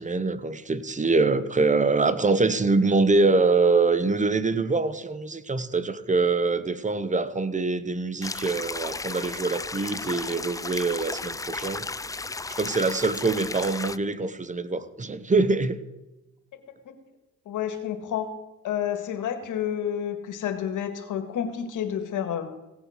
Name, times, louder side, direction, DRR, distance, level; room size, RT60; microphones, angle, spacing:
voice 1, 0.0-11.8 12.5-15.8, right 3 dB, 25° right, 14 dB, 1.0 m, -24 dB
sound 1, 8.2-14.0, left 3 dB, 10° left, 0.4 m, -34 dB
voice 2, 17.5-18.3 18.6-22.5, left 9 dB, 75° left, 7 dB, 1.8 m, -30 dB
16.5 x 7.9 x 6.5 m, 1.0 s
cardioid pair, 80°, 32 cm